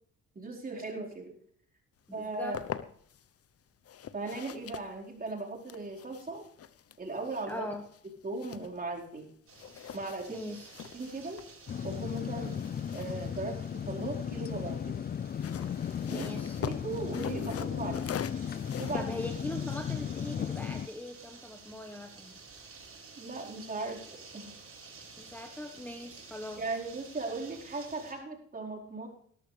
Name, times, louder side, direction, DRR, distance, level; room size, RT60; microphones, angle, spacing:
voice 1, 0.3-1.3 2.1-2.6 4.1-6.4 7.0-7.7 8.2-9.3 9.9-10.5 10.9-11.4 11.8-15.0 16.1-16.3 16.6-18.1 18.8-19.1 23.2-24.5 26.6-29.1, right 3 dB, 30° right, -2 dB, 4.6 m, -38 dB
sound 1, 2.1-3.3 3.8-9.2 9.5-14.2 15.2-20.7, left 9 dB, 50° left, 0.9 m, -44 dB
voice 2, 2.1-2.6 7.5-7.8 10.3-10.7 16.0-16.6 18.9-22.4 25.2-26.6, left 1 dB, 5° left, 4 dB, 1.3 m, -41 dB
sound 2, 9.5-28.1, right 4 dB, 45° right, 6.3 m, -52 dB
sound 3, 11.7-20.9, left 8 dB, 30° left, 0.4 m, -35 dB
19.0 x 12.5 x 3.4 m, 0.63 s
cardioid pair, 90°, 30 cm